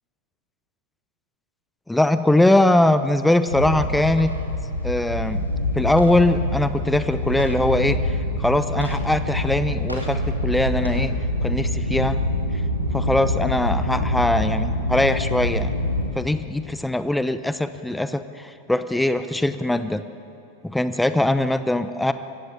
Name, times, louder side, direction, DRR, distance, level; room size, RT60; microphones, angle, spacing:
voice 1, 1.9-4.3 4.8-5.5 5.7-11.1 11.4-12.2 12.9-15.7 16.1-20.0 20.6-22.1, left 1 dB, 5° left, 12 dB, 0.8 m, -21 dB
sound 1, 3.5-16.1, left 1 dB, 90° right, 2.5 m, -25 dB
25.0 x 16.0 x 8.9 m, 2.7 s
figure-of-eight pair, 90°, 0 cm